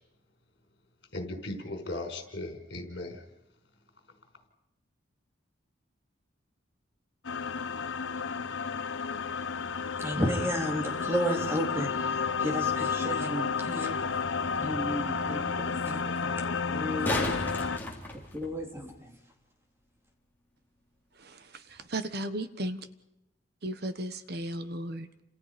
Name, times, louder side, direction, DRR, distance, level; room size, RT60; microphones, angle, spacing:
voice 1, 1.1-3.2, left 2 dB, 60° left, 4 dB, 5.1 m, -37 dB
sound 1, 7.2-17.8, left 5 dB, 85° left, 0.9 m, -31 dB
voice 2, 10.0-14.0 14.6-16.4 16.7-17.2 18.1-19.1, equal, 15° right, 1 dB, 3.5 m, -33 dB
sound 2, 16.7-18.8 21.7-21.8, left 1 dB, 10° left, 3.8 m, -33 dB
voice 3, 21.2-22.8 23.6-25.2, right 1 dB, 55° right, 10 dB, 1.3 m, -35 dB
30.0 x 27.5 x 5.3 m, 0.87 s
head